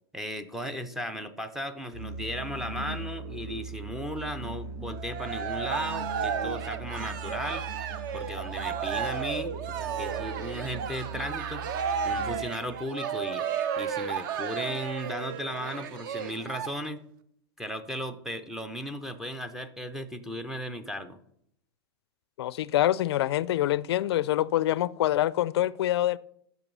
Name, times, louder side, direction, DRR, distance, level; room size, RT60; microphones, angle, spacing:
voice 1, 0.1-7.6 8.1-11.6 12.0-13.4 13.8-17.0 17.6-21.2, equal, 5° right, 0.4 m, -36 dB
Musical instrument, 1.9-12.7, right 3 dB, 80° right, 1.5 m, -39 dB
Cheering, 4.9-16.7, right 7 dB, 50° right, 0.7 m, -33 dB
voice 2, 22.4-26.2, left 13 dB, 75° left, 0.4 m, -25 dB
9.0 x 6.1 x 5.4 m
supercardioid pair, 160°, 13 cm